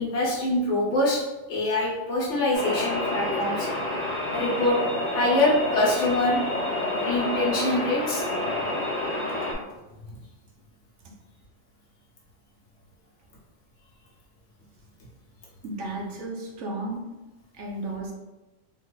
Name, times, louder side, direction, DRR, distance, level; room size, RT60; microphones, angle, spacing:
voice 1, 0.0-3.7 4.3-4.8 5.1-6.4 7.0-8.2, left 2 dB, 65° left, -4 dB, 1.2 m, -24 dB
sound 1, 2.5-9.5, left 1 dB, 90° left, 1.3 m, -28 dB
voice 2, 15.6-17.2 17.5-18.1, right 2 dB, 70° right, 0 dB, 1.0 m, -34 dB
4.0 x 2.5 x 2.2 m, 1.1 s
omnidirectional pair, 1.4 m